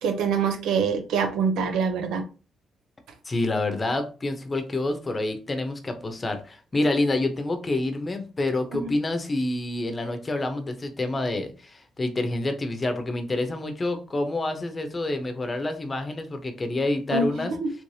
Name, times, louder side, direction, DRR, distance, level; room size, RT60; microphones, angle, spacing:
voice 1, 0.0-2.2 8.7-8.9 17.1-17.7, right 5 dB, 85° right, 6 dB, 0.7 m, -25 dB
voice 2, 3.2-17.5, left 2 dB, 25° left, 7 dB, 0.7 m, -27 dB
3.2 x 3.1 x 2.7 m, 0.35 s
cardioid pair, 90°, 0 cm